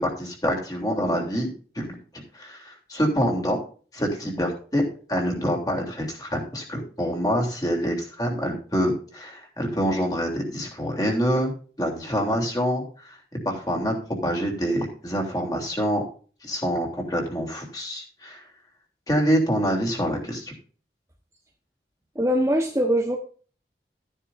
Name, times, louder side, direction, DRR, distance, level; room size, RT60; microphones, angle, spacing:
voice 1, 0.0-1.5 1.7-3.6 3.9-4.8 5.1-11.5 11.8-13.2 13.4-14.0 14.2-16.0 16.4-18.4 19.1-20.5, equal, 20° left, 1 dB, 3.3 m, -26 dB
voice 2, 22.1-23.2, equal, 15° right, 1 dB, 1.2 m, -22 dB
13.5 x 10.0 x 2.6 m, 0.40 s
head